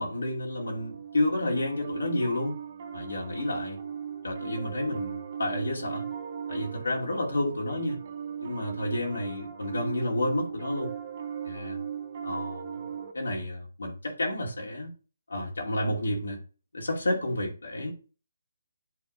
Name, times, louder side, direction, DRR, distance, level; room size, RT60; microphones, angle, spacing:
voice 1, 0.0-2.6 2.9-3.8 4.2-6.1 6.5-8.0 8.4-10.9 11.4-11.8 12.2-12.7 13.1-14.9 15.3-16.4 16.7-17.9, left 1 dB, 80° left, 2.4 m, -30 dB
Piano, 0.7-13.1, right 7 dB, 40° right, 0.9 m, -38 dB
8.7 x 3.6 x 3.8 m
figure-of-eight pair, 155°, 0 cm